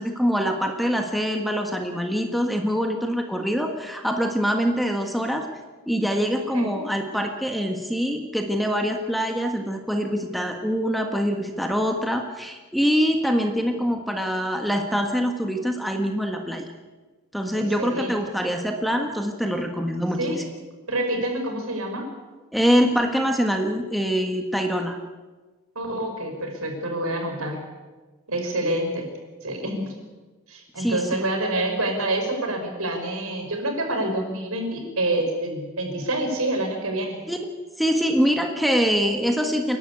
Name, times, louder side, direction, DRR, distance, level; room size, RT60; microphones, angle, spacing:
voice 1, 0.0-5.5 5.9-16.7 17.3-20.4 22.5-25.0 30.8-31.2 37.3-37.4 37.8-39.8, equal, ahead, 3 dB, 1.6 m, -24 dB
voice 2, 17.5-18.1 20.2-20.4 20.9-22.1 25.8-27.6 28.3-29.1 29.4-29.9 30.5-37.2, right 1 dB, 75° right, 4 dB, 5.3 m, -27 dB
29.5 x 12.0 x 8.5 m, 1.3 s
head